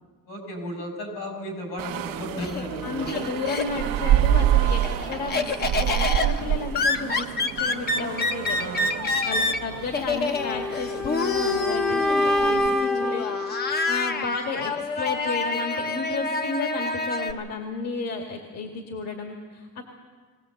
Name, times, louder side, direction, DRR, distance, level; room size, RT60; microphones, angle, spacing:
voice 1, 0.3-3.3 9.2-9.8, equal, 70° left, 3 dB, 7.1 m, -35 dB
sound 1, 1.8-12.7, right 11 dB, 80° right, 1.0 m, -28 dB
Laughter, 1.9-4.0 4.4-17.3, left 3 dB, 30° left, 1.0 m, -28 dB
voice 2, 2.8-4.8 5.1-8.8 9.3-19.8, left 4 dB, 45° left, 2 dB, 2.1 m, -33 dB
sound 2, 10.3-14.4, left 1 dB, ahead, 0.8 m, -26 dB
22.0 x 18.0 x 7.9 m, 1.5 s
cardioid pair, 170°, 34 cm